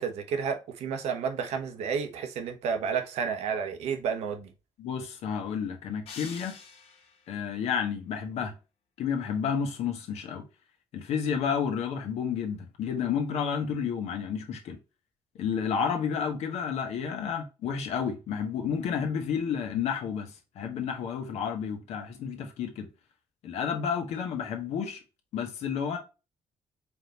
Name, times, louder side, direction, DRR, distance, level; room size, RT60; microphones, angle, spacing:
voice 1, 0.0-4.5, right 6 dB, 85° right, 1.0 m, -31 dB
voice 2, 4.8-6.6 7.3-8.5 9.0-10.4 10.9-14.8 15.3-22.9 23.4-25.0 25.3-26.0, left 7 dB, 85° left, 1.3 m, -31 dB
sound 1, 6.1-7.3, left 5 dB, 65° left, 1.4 m, -45 dB
4.6 x 3.7 x 2.9 m
cardioid pair, 130°, 11 cm